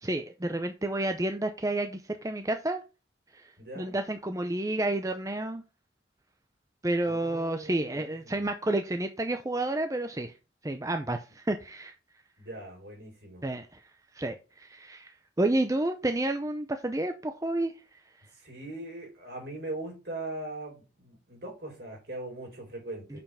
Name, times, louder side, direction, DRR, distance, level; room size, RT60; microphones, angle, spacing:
voice 1, 0.0-2.8 3.3-5.6 6.8-10.3 10.6-11.9 13.4-13.8 14.1-17.7 23.1-23.2, right 1 dB, 15° right, 0.5 m, -30 dB
voice 2, 3.6-4.0 7.0-8.4 12.4-13.4 18.3-23.2, right 2 dB, 60° right, 4.5 m, -40 dB
6.9 x 5.6 x 5.6 m
head